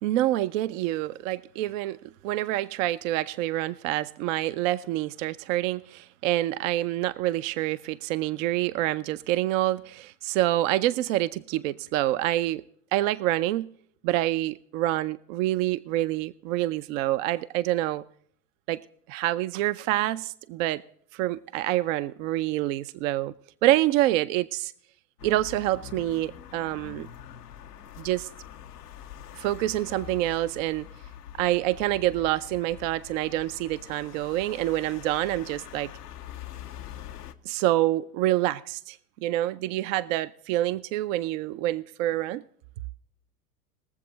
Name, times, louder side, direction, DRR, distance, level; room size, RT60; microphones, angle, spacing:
voice 1, 0.0-12.6 12.9-13.7 14.0-18.0 18.7-18.8 19.1-20.8 21.1-23.3 23.6-24.7 25.2-27.1 28.0-28.3 29.3-30.9 31.4-35.9 37.5-39.0 39.2-42.4, right 15 dB, 60° right, 0.6 m, -27 dB
sound 1, 25.2-37.3, left 10 dB, 85° left, 1.0 m, -44 dB
21.0 x 7.6 x 3.9 m
hypercardioid pair, 85°, 46 cm